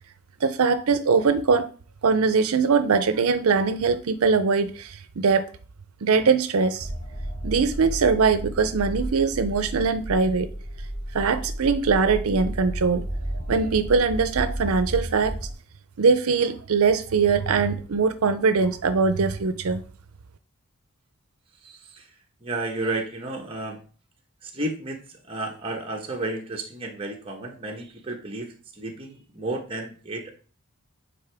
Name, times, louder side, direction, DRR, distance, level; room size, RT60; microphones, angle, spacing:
voice 1, 0.4-1.7 2.0-5.4 6.0-6.9 7.4-10.5 11.1-13.1 13.5-15.3 16.0-19.8, right 5 dB, 80° right, 0.5 m, -22 dB
sound 1, 6.8-15.5, right 1 dB, 35° left, 2.9 m, -33 dB
voice 2, 21.6-22.0 22.4-23.8 24.5-25.0 25.3-30.3, right 2 dB, 25° right, 1.1 m, -32 dB
9.4 x 3.8 x 3.4 m
head